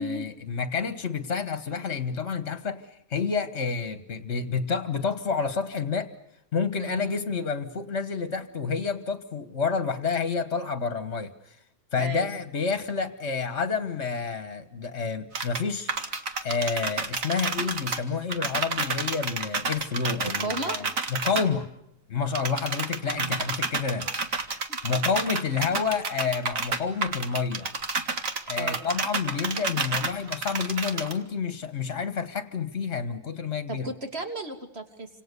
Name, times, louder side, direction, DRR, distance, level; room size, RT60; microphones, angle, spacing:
voice 1, 0.0-6.1 6.5-11.6 11.9-16.2 16.4-21.7 22.1-24.1 24.8-27.7 28.5-33.9, left 5 dB, 55° left, 10 dB, 1.6 m, -29 dB
voice 2, 6.8-7.3 12.0-12.4 20.4-20.8 23.0-23.4 24.7-24.8 28.6-28.8 33.7-35.1, right 2 dB, 45° right, 5 dB, 3.2 m, -34 dB
sound 1, 15.3-15.6 15.9-18.0 18.3-21.4 22.3-31.1, right 4 dB, 70° right, 2.4 m, -30 dB
30.0 x 26.5 x 6.8 m, 0.78 s
omnidirectional pair, 1.5 m